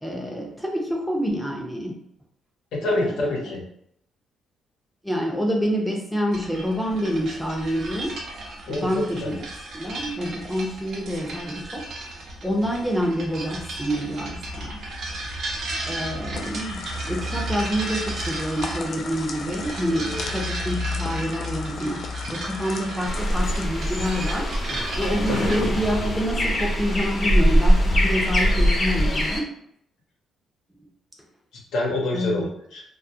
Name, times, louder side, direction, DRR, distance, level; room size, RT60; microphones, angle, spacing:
voice 1, 0.0-2.0 2.9-3.1 5.0-8.2 8.7-9.4 9.7-11.8 12.4-14.8 15.9-24.5 25.0-29.5 32.1-32.5, equal, ahead, 0 dB, 0.5 m, -27 dB
voice 2, 2.7-3.6 8.7-9.4 19.9-20.3 25.3-25.5 31.7-32.8, left 2 dB, 80° left, -2 dB, 0.8 m, -27 dB
sound 1, 6.3-25.5, right 1 dB, 65° right, 0.6 m, -34 dB
sound 2, 16.3-23.6, left 4 dB, 60° left, 0.3 m, -37 dB
sound 3, 23.1-29.4, equal, 35° left, 0.7 m, -22 dB
2.2 x 2.1 x 2.7 m, 0.70 s
cardioid pair, 90°, 0 cm